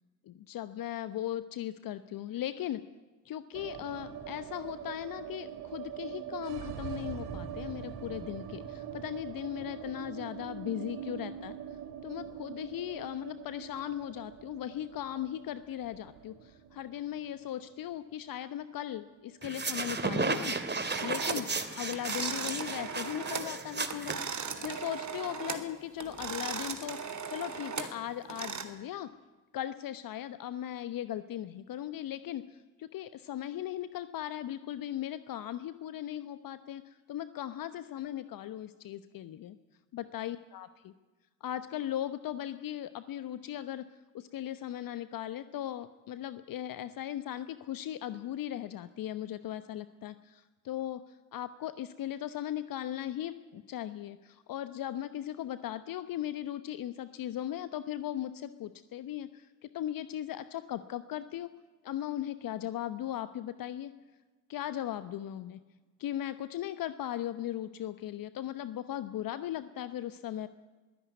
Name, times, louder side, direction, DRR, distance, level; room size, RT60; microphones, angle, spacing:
voice 1, 0.3-2.8 3.2-20.6 21.0-21.5 21.8-24.2 24.6-29.1 29.5-39.6 39.9-40.9 41.4-43.9 44.1-61.5 61.8-63.9 64.5-65.6 66.0-70.5, left 12 dB, 55° left, 13 dB, 1.0 m, -38 dB
sound 1, 3.5-19.6 19.9-20.0 20.3-21.0, right 9 dB, 65° right, 2.2 m, -43 dB
sound 2, 19.4-24.8, right 3 dB, 25° right, 2.7 m, -34 dB
sound 3, 20.9-21.5 21.9-23.5 23.8-25.7 26.0-28.6, right 6 dB, 40° right, 2.8 m, -38 dB
22.0 x 15.5 x 9.4 m, 1.3 s
hypercardioid pair, 50°, 42 cm